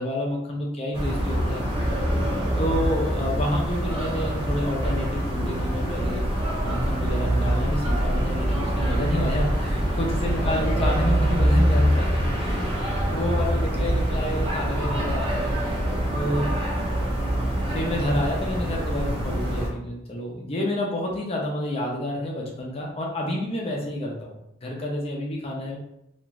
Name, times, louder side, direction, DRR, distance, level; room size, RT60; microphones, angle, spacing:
voice 1, 0.0-2.1 2.6-6.2 6.6-12.1 12.4-12.8 13.1-15.5 16.1-16.5 17.6-25.8, left 1 dB, 30° left, -1 dB, 0.5 m, -29 dB
sound 1, 0.9-19.7, equal, 25° right, 0.6 m, -24 dB
2.5 x 2.3 x 3.0 m, 0.82 s
head